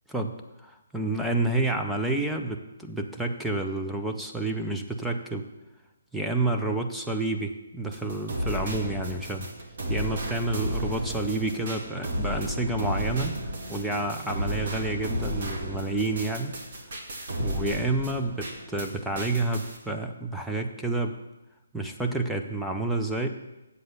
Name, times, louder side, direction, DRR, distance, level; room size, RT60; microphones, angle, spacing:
voice 1, 0.6-5.5 6.1-9.5 9.9-13.4 13.7-16.5 17.4-21.2 21.7-23.3, right 2 dB, ahead, 2 dB, 0.5 m, -29 dB
sound 1, 7.9-18.9 19.2-19.8, equal, 45° right, 1.7 m, -33 dB
7.9 x 7.5 x 6.6 m, 1.0 s
hypercardioid pair, 170°, 0 cm